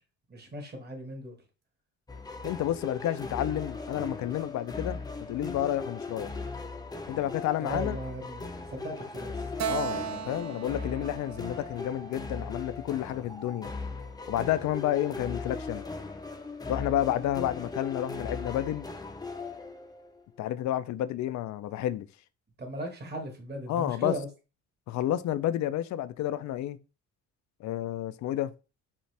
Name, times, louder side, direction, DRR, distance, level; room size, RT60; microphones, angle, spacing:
voice 1, 0.3-1.3 7.6-9.3 9.6-9.7 22.6-24.3, equal, 35° right, 1.5 m, -37 dB
sound 1, 2.1-20.2, left 3 dB, 15° left, 0.6 m, -38 dB
voice 2, 2.4-6.3 7.1-8.0 9.7-13.7 14.3-15.8 16.7-18.9 20.4-22.1 23.7-24.2 24.9-26.8 27.6-28.5, left 12 dB, 70° left, 0.5 m, -30 dB
Keyboard (musical), 9.6-13.0, right 8 dB, 65° right, 0.6 m, -37 dB
5.4 x 2.5 x 3.3 m
cardioid pair, 90°, 30 cm